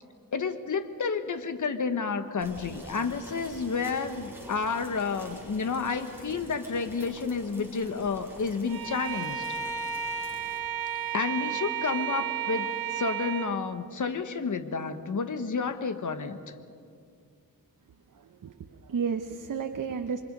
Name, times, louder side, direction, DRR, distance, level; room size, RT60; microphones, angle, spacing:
voice 1, 0.3-9.4 11.1-16.4, left 5 dB, 60° left, 9 dB, 1.4 m, -30 dB
sound 1, 2.4-10.6, right 1 dB, 5° right, 6.5 m, -48 dB
Bowed string instrument, 8.7-13.6, right 8 dB, 80° right, 1.8 m, -32 dB
voice 2, 18.1-20.2, right 6 dB, 60° right, 6 dB, 1.0 m, -33 dB
28.0 x 24.0 x 5.4 m, 2.3 s
wide cardioid pair, 95°, 35 cm